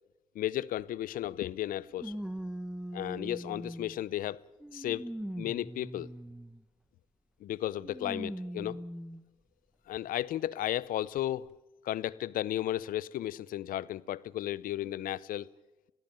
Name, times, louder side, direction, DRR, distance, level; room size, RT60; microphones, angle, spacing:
voice 1, 0.3-2.2 2.9-4.4 4.7-5.1 5.3-6.1 7.4-8.8 9.9-11.5 11.8-15.5, left 13 dB, 80° left, 0.6 m, -34 dB
sound 1, 0.8-0.9 2.0-4.0 4.6-6.6 7.8-9.2 9.9-10.0 11.2-11.3, right 1 dB, 5° right, 1.1 m, -41 dB
21.5 x 14.5 x 9.1 m
supercardioid pair, 50°, 14 cm